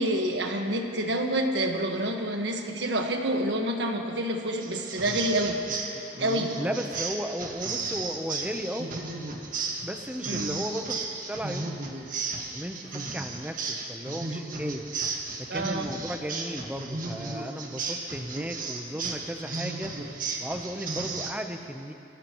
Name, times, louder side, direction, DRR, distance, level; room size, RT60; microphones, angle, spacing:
voice 1, 0.0-5.6 6.2-6.5 10.3-10.6 15.5-16.0, right 1 dB, 75° right, 3 dB, 1.5 m, -28 dB
sound 1, 4.6-21.3, right 4 dB, 50° right, 1.6 m, -35 dB
voice 2, 6.6-8.9 9.8-11.8 12.5-15.1 15.4-20.0 20.4-21.9, equal, 10° right, 5 dB, 0.8 m, -35 dB
25.0 x 16.5 x 3.1 m, 2.8 s
head